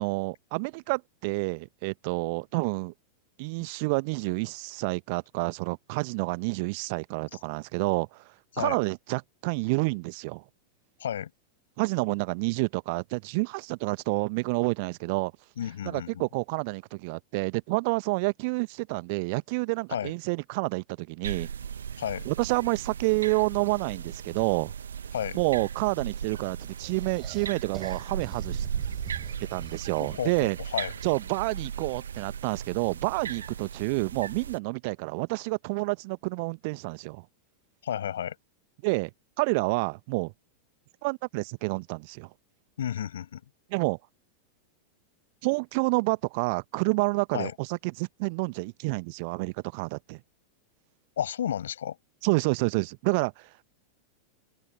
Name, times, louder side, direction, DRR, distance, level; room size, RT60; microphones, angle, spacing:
voice 1, 0.0-2.9 3.4-8.2 8.6-10.4 11.8-15.3 15.8-21.5 22.2-24.7 25.3-28.6 29.5-30.6 31.0-37.2 38.8-39.1 39.4-40.3 41.0-42.3 43.7-44.0 45.4-50.2 52.2-53.6, right 29 dB, 45° right, 1.2 m, -29 dB
voice 2, 15.6-16.2 19.9-20.1 22.0-22.3 25.1-25.4 30.0-30.9 37.8-38.4 42.8-43.4 47.3-47.5 51.2-52.0, left 10 dB, 65° left, 5.9 m, -32 dB
sound 1, 21.2-34.6, right 7 dB, 70° right, 1.2 m, -37 dB
sound 2, 26.8-30.4, right 9 dB, 25° right, 4.2 m, -44 dB
open air
figure-of-eight pair, 90°, 0 cm